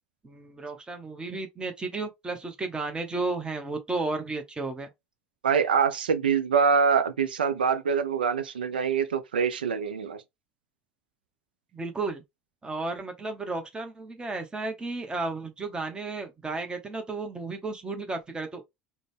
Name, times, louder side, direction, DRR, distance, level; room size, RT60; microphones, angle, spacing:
voice 1, 0.2-4.9 11.7-12.2 12.6-18.6, right 3 dB, 15° right, 0.9 m, -33 dB
voice 2, 5.4-10.2, right 6 dB, 80° right, 0.5 m, -24 dB
3.8 x 2.1 x 3.4 m
figure-of-eight pair, 70°, 5 cm